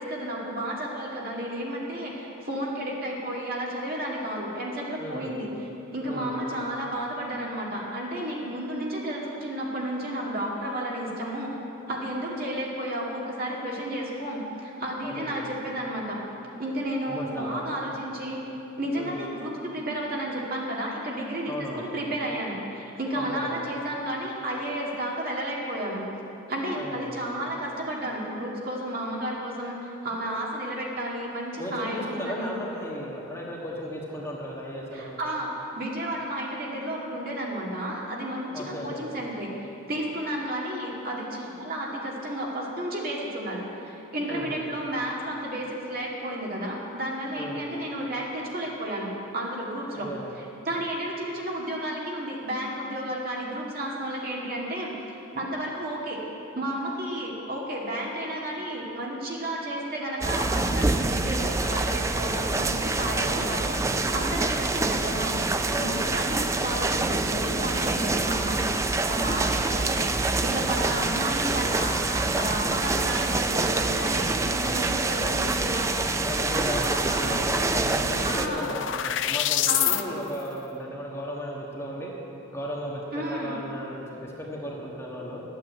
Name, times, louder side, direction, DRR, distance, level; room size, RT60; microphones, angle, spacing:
voice 1, 0.0-5.5 5.9-11.6 11.9-16.2 16.6-26.1 26.5-32.5 34.9-50.1 50.4-54.9 55.3-56.2 56.5-63.8 64.1-65.4 65.8-68.8 69.1-72.0 72.3-75.9 76.5-77.5 78.2-78.7 79.7-80.0 83.1-83.6, right 1 dB, 45° right, -3 dB, 2.1 m, -32 dB
voice 2, 5.0-5.3 6.0-6.3 15.0-15.4 17.1-17.6 18.9-19.3 21.5-21.9 23.1-23.5 26.7-27.1 31.6-35.2 38.5-39.0 44.3-44.6 47.4-47.6 49.9-50.3 63.1-63.6 65.7-66.1 70.7-71.0 76.2-82.1 82.5-85.4, equal, 15° left, -4 dB, 1.4 m, -35 dB
sound 1, 60.2-78.5, right 3 dB, 15° right, 0.3 m, -26 dB
sound 2, 77.8-80.0, left 12 dB, 60° left, 0.4 m, -27 dB
11.5 x 8.9 x 8.0 m, 2.9 s
head